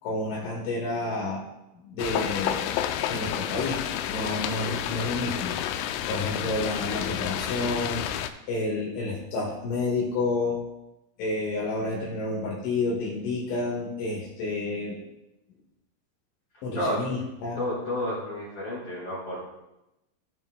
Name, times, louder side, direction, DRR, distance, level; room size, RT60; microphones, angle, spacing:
voice 1, 0.0-1.5 1.7-2.7 3.0-5.6 6.1-8.1 8.5-10.6 11.2-15.0 16.6-17.6, left 2 dB, 70° left, -3 dB, 3.8 m, -30 dB
sound 1, 2.0-8.3, left 11 dB, 90° left, 3.3 m, -30 dB
voice 2, 17.6-19.4, left 1 dB, 45° left, -7 dB, 3.0 m, -30 dB
19.0 x 6.9 x 2.3 m, 0.93 s
omnidirectional pair, 6.0 m